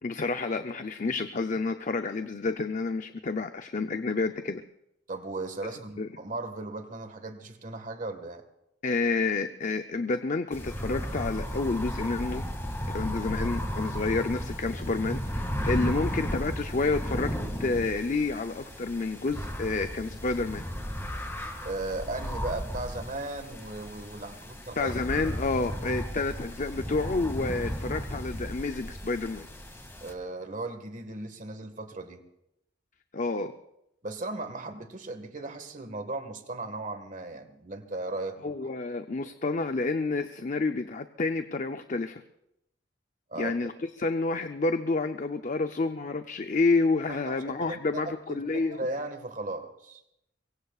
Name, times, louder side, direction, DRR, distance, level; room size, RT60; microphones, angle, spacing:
voice 1, 0.0-4.6 6.0-6.1 8.8-12.5 12.9-17.3 17.6-20.6 24.8-29.5 33.1-33.5 38.4-42.2 43.4-43.7 44.0-48.8, left 3 dB, 45° left, 8 dB, 0.6 m, -29 dB
voice 2, 5.1-8.4 15.9-16.0 21.6-24.9 30.0-32.2 34.0-38.5 39.1-39.3 43.3-43.5 47.1-50.0, right 2 dB, 45° right, 7 dB, 1.6 m, -37 dB
sound 1, 10.5-30.1, equal, 15° left, 2.1 m, -35 dB
24.0 x 23.0 x 2.4 m, 0.83 s
head